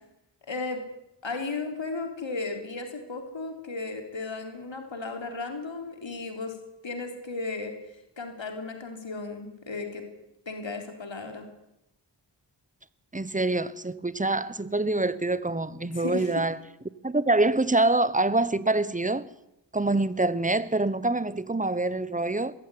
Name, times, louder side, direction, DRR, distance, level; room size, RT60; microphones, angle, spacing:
voice 1, 0.5-0.8 1.2-6.6 6.8-7.7 8.2-10.1 10.5-11.5 15.9-16.3, left 3 dB, 80° left, 3.5 m, -35 dB
voice 2, 13.1-16.6 17.0-19.3 19.7-22.5, right 2 dB, 15° right, 1.1 m, -25 dB
21.0 x 15.0 x 9.9 m
wide cardioid pair, 65°, 44 cm